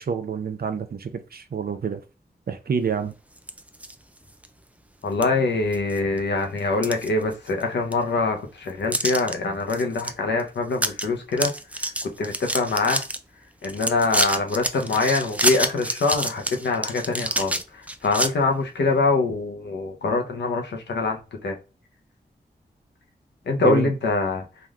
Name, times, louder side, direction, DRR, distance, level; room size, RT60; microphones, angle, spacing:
voice 1, 0.0-2.0 2.5-3.1 23.6-23.9, right 6 dB, 60° right, 0.6 m, -28 dB
sound 1, 3.4-3.9 4.4-4.5 5.2-5.3 5.7-6.2 6.6-7.6 7.9-8.0 8.9-9.3 9.7-10.1 10.4-10.5 10.7-11.0 11.3-13.2 13.6-18.3, right 1 dB, 10° right, 0.4 m, -27 dB
voice 2, 5.0-13.0 13.6-21.6 23.5-24.5, left 3 dB, 85° left, 0.8 m, -24 dB
3.4 x 2.5 x 2.3 m
cardioid pair, 55°, 18 cm